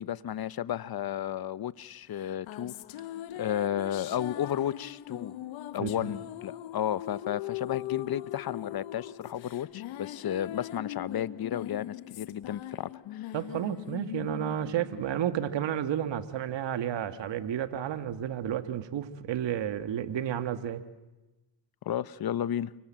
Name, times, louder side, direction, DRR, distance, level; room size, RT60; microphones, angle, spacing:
voice 1, 0.0-3.1 3.4-5.3 5.7-13.3 21.8-22.7, left 10 dB, 50° left, 1.1 m, -33 dB
sound 1, 2.2-15.8, left 14 dB, 85° left, 1.5 m, -40 dB
voice 2, 5.8-6.1 13.3-20.8, right 10 dB, 70° right, 2.1 m, -31 dB
29.5 x 24.5 x 7.7 m
supercardioid pair, 65°, 46 cm